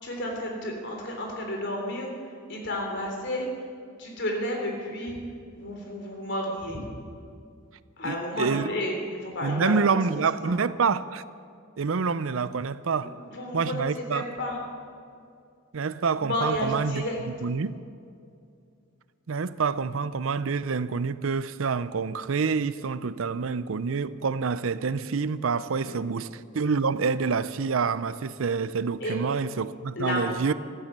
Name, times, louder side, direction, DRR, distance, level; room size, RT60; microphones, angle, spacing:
voice 1, 0.0-3.5 4.0-5.2 5.6-6.8 8.0-10.5 13.0-14.6 16.2-17.2 25.7-26.0 29.0-29.2 30.0-30.5, left 1 dB, 60° left, 3.5 m, -32 dB
voice 2, 8.0-8.7 9.4-11.2 11.8-13.1 13.5-14.3 15.7-17.0 17.4-17.8 19.3-30.5, right 5 dB, 75° right, 0.6 m, -27 dB
15.0 x 13.5 x 6.7 m
head